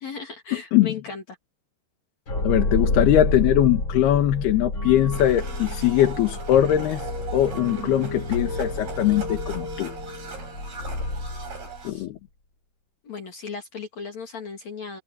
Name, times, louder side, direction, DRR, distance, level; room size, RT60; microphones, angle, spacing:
voice 1, 0.0-1.2 11.8-12.1 13.0-15.0, left 5 dB, 50° left, 3.7 m, -36 dB
sound 1, 2.3-11.9, left 2 dB, 30° left, 8.3 m, -29 dB
voice 2, 2.4-7.1 7.3-9.9 11.9-12.2, left 12 dB, 90° left, 3.5 m, -21 dB
Domestic sounds home sounds, 5.1-11.9, right 6 dB, 80° right, 8.9 m, -40 dB
omnidirectional pair, 4.4 m